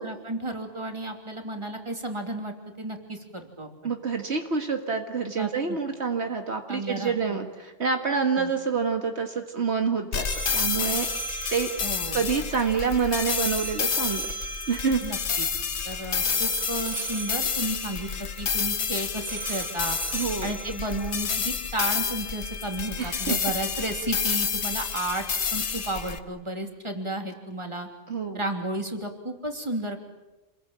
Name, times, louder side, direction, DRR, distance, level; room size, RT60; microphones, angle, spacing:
voice 1, 0.0-3.9 5.4-5.8 6.7-7.4 8.3-8.5 11.8-12.2 15.0-15.5 15.8-18.1 18.4-20.0 20.4-27.9 28.3-30.0, right 1 dB, 25° right, 4 dB, 3.1 m, -33 dB
voice 2, 3.8-10.3 10.5-11.1 11.5-11.7 12.1-14.3 14.7-15.0 20.1-20.5 23.0-23.5 28.1-28.4, right 5 dB, 65° right, 5 dB, 1.9 m, -27 dB
sound 1, 10.1-26.2, left 6 dB, 70° left, 1.5 m, -29 dB
sound 2, 10.3-21.6, right 6 dB, 40° right, 1.2 m, -39 dB
28.0 x 21.5 x 8.9 m, 1.0 s
omnidirectional pair, 1.2 m